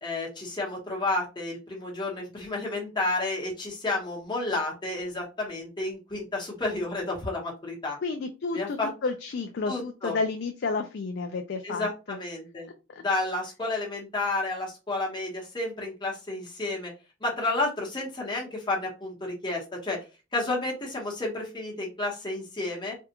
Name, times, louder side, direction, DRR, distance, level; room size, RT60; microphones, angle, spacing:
voice 1, 0.0-8.0 8.5-8.9 9.7-10.2 11.6-12.7 13.0-16.9 17.2-20.0 20.3-23.0, left 2 dB, 20° left, -3 dB, 1.1 m, -31 dB
voice 2, 8.0-12.2 12.9-13.0, left 4 dB, 50° left, 5 dB, 0.4 m, -31 dB
3.4 x 2.4 x 2.8 m, 0.30 s
head